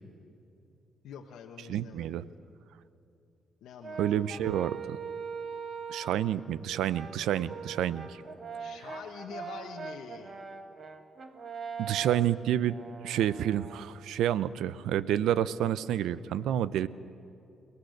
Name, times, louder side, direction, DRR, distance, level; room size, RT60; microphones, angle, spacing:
voice 1, 1.0-2.2 3.6-4.4 8.6-10.4, left 7 dB, 85° left, 2 dB, 1.1 m, -46 dB
voice 2, 1.7-2.3 4.0-5.0 5.9-8.2 11.8-12.8 13.0-16.9, right 11 dB, 85° right, 17 dB, 0.5 m, -29 dB
Brass instrument, 3.8-6.3 6.9-13.9, right 6 dB, 35° right, 1.4 m, -41 dB
28.5 x 19.0 x 6.6 m, 2.8 s
cardioid pair, 120°, 0 cm